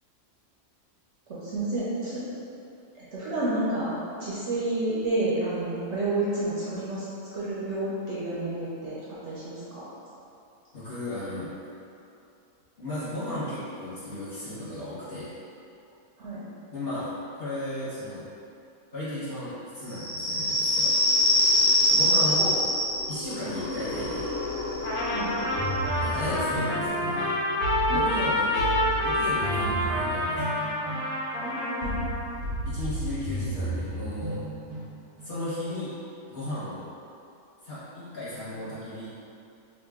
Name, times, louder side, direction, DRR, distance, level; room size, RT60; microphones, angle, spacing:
voice 1, 1.3-2.2 2.9-3.9 4.2-7.1 7.3-9.0 9.2-9.9 16.2-16.4 25.1-25.3 26.3-26.5 27.9-28.2 29.6-29.7 31.4-32.0, right 2 dB, 60° right, -9 dB, 0.8 m, -30 dB
voice 2, 10.7-11.5 12.8-15.4 16.7-18.2 18.9-20.9 21.9-22.6 23.1-24.3 26.0-27.4 27.9-28.7 29.0-30.6 32.6-34.4 35.2-35.9 36.3-36.9 37.6-39.1, left 1 dB, 40° left, -13 dB, 1.1 m, -35 dB
sound 1, 19.9-27.2, left 1 dB, 90° left, 1.2 m, -25 dB
Trumpet, 24.8-32.2, left 1 dB, 70° left, 1.1 m, -28 dB
sound 2, 25.6-35.4, right 2 dB, 80° right, 1.1 m, -34 dB
2.9 x 2.5 x 3.5 m, 2.6 s
omnidirectional pair, 1.6 m